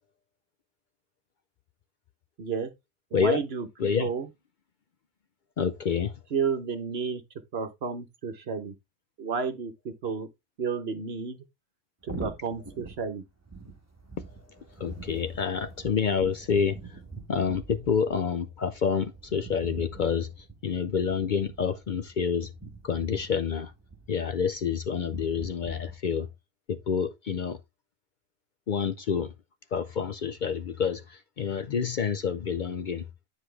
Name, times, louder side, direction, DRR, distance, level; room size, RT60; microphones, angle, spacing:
voice 1, 2.4-2.7 3.1-3.7 4.0-4.3 6.3-7.2 7.5-8.7 9.2-10.3 10.6-11.4 12.0-13.2, right 5 dB, 60° right, 1.1 m, -31 dB
voice 2, 5.6-6.2 14.8-17.0 17.3-22.5 22.8-23.7 24.1-26.3 26.7-27.6 28.7-29.3 29.7-33.1, left 6 dB, 55° left, 0.5 m, -28 dB
sound 1, 12.0-25.9, right 3 dB, 15° right, 1.5 m, -44 dB
9.8 x 4.7 x 3.3 m
omnidirectional pair, 1.3 m